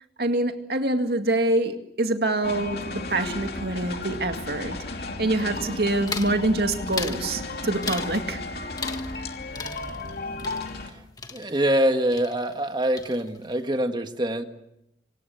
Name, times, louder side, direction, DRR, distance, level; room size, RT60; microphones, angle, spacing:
voice 1, 0.2-4.8 5.2-8.4, right 2 dB, 60° right, 2.2 m, -25 dB
sound 1, 2.4-10.9, left 2 dB, 60° left, 2.8 m, -34 dB
sound 2, 6.1-6.4 6.9-7.3 7.8-8.2 8.8-9.3 9.5-11.9 12.1-12.7 13.0-13.5, left 4 dB, 20° left, 1.4 m, -36 dB
voice 2, 11.3-14.4, right 1 dB, 25° right, 1.6 m, -24 dB
26.5 x 26.0 x 7.1 m
head